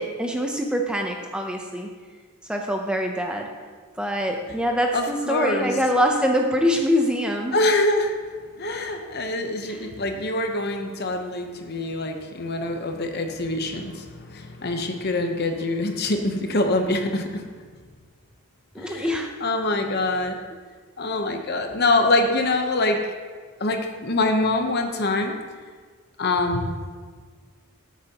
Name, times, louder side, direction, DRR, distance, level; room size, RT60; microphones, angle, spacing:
voice 1, 0.0-1.9 2.5-3.5 4.0-7.7 9.7-9.9 18.7-19.3, equal, 5° right, 2 dB, 0.6 m, -24 dB
voice 2, 4.9-5.7 7.5-8.1 8.6-17.4 18.8-20.4 21.0-23.0 23.6-25.3 26.2-26.8, left 2 dB, 45° left, 5 dB, 0.8 m, -24 dB
13.0 x 8.3 x 2.9 m, 1.5 s
head